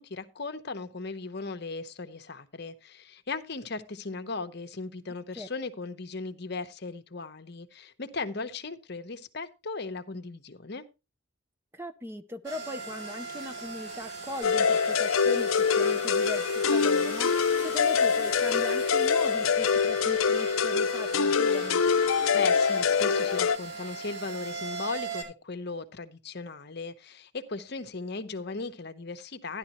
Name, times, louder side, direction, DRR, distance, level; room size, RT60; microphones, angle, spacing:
voice 1, 0.1-10.8 22.3-29.6, left 3 dB, 50° left, 0.9 m, -37 dB
voice 2, 11.7-21.8, left 1 dB, 10° right, 0.5 m, -39 dB
sound 1, 12.4-25.2, right 4 dB, 60° right, 5.2 m, -39 dB
sound 2, 14.4-23.6, left 6 dB, 75° left, 0.6 m, -24 dB
13.0 x 11.0 x 3.0 m
head